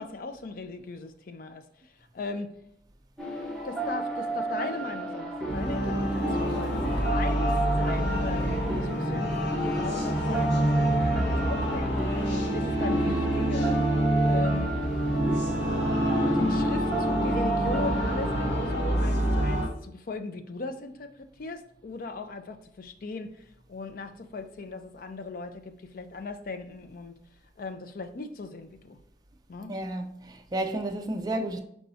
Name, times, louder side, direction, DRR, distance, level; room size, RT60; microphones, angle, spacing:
voice 1, 0.0-2.6 3.6-9.4 9.6-13.8 14.2-14.8 16.2-27.2 27.6-29.0 29.5-29.8, left 3 dB, 50° left, 0.4 m, -38 dB
sound 1, 3.2-18.5, right 2 dB, ahead, 0.9 m, -32 dB
sound 2, 5.5-19.7, equal, 75° left, 1.1 m, -27 dB
voice 2, 29.7-31.6, right 1 dB, 20° right, 0.4 m, -31 dB
4.6 x 4.3 x 2.7 m
head